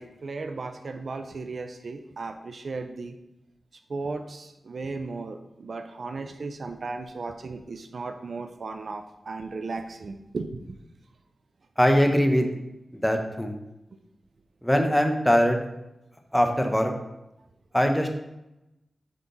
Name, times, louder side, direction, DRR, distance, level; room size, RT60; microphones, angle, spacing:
voice 1, 0.0-3.2 3.9-10.8, right 3 dB, 65° right, 7 dB, 0.5 m, -36 dB
voice 2, 11.8-12.5 13.0-13.6 14.6-15.6 16.3-16.9 17.7-18.1, equal, 5° left, 4 dB, 1.0 m, -21 dB
10.0 x 3.7 x 4.0 m, 0.91 s
wide cardioid pair, 70°, 0 cm